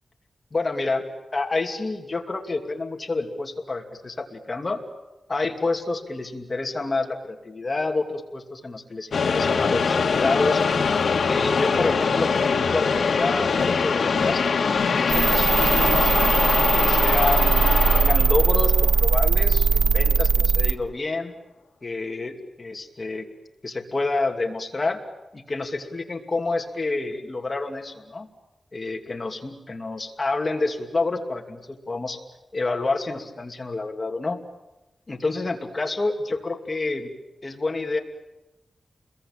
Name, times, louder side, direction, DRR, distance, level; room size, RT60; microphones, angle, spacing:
voice 1, 0.5-1.1 1.3-4.8 5.3-10.6 11.2-14.4 14.9-16.1 16.7-17.7 17.9-21.3 21.8-23.2 23.6-25.0 25.3-28.3 28.7-32.2 32.5-34.4 35.1-37.1 37.4-38.0, left 3 dB, 30° left, 3 dB, 2.7 m, -28 dB
sound 1, 9.1-19.4, left 5 dB, 65° left, 2.1 m, -23 dB
sound 2, 15.1-20.7, right 5 dB, 65° right, 1.0 m, -20 dB
29.5 x 22.5 x 9.0 m, 0.98 s
wide cardioid pair, 155°, 0 cm